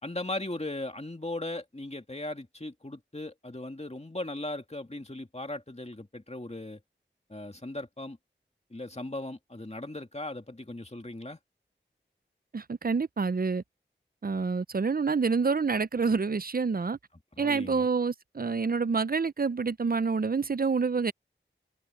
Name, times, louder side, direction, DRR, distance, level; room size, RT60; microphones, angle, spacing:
voice 1, 0.0-6.8 7.3-8.2 8.7-11.4 17.3-17.9, left 2 dB, 35° left, 2.4 m, -38 dB
voice 2, 12.5-13.6 14.2-17.0 17.4-21.1, right 4 dB, 50° right, 0.5 m, -27 dB
wide cardioid pair, 45°, 20 cm